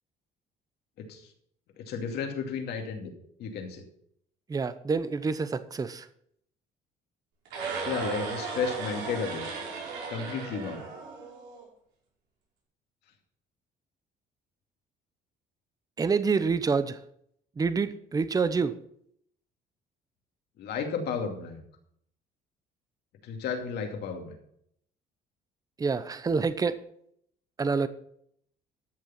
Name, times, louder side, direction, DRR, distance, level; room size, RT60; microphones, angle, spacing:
voice 1, 1.8-3.1 3.4-3.9 7.8-9.4 10.1-10.9 20.6-21.6 23.2-24.4, left 5 dB, 75° left, 3 dB, 2.5 m, -33 dB
voice 2, 4.5-6.1 16.0-17.0 17.6-18.7 25.8-26.8 27.6-27.9, right 5 dB, 20° right, 13 dB, 0.7 m, -27 dB
sound 1, 7.4-11.6, right 4 dB, 85° right, 5.2 m, -36 dB
13.0 x 6.8 x 5.9 m, 0.70 s
cardioid pair, 110°, 17 cm